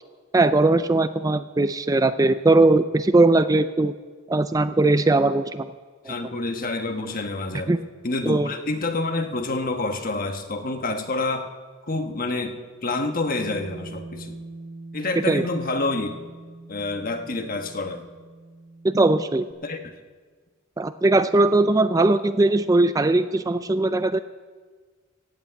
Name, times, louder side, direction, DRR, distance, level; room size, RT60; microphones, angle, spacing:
voice 1, 0.3-3.9 4.3-5.7 6.1-6.2 7.7-7.8 8.3-8.5 15.3-15.5 18.8-19.5 20.8-24.2, right 2 dB, 15° right, 11 dB, 0.4 m, -19 dB
voice 2, 6.1-7.7 8.0-11.5 11.9-14.4 14.9-16.1 16.7-18.0 19.6-19.9, left 2 dB, 45° left, 6 dB, 1.3 m, -28 dB
Bass guitar, 13.3-19.5, right 2 dB, 65° right, 1.4 m, -42 dB
15.5 x 8.4 x 8.8 m, 1.5 s
head